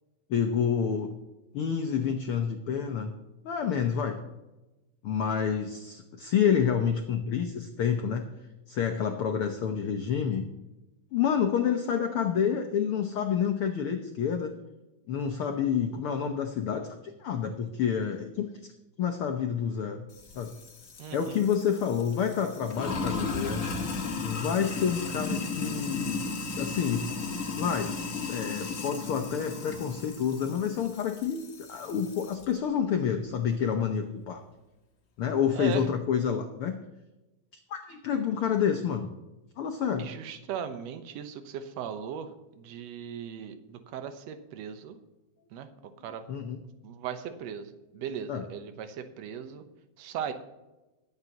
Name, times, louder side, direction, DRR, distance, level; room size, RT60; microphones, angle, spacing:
voice 1, 0.3-1.1 1.5-3.1 3.4-4.2 5.0-8.3 8.7-10.4 11.1-14.5 15.1-18.5 19.0-20.0 20.3-20.5 21.1-23.7 24.2-26.2 26.6-27.0 27.6-27.9 28.3-34.4 35.2-36.8 37.7-39.1 39.6-40.1 46.3-46.6 48.3-48.4, left 7 dB, 75° left, 5 dB, 1.2 m, -28 dB
Sink (filling or washing), 20.1-32.4, left 4 dB, 45° left, 1.1 m, -35 dB
voice 2, 21.0-21.4 35.5-35.9 40.0-42.3 42.6-45.0 45.5-45.7 46.0-46.3 46.8-49.6 50.0-50.3, right 8 dB, 70° right, 9 dB, 2.0 m, -38 dB
21.5 x 8.1 x 2.9 m, 1.1 s
omnidirectional pair, 3.5 m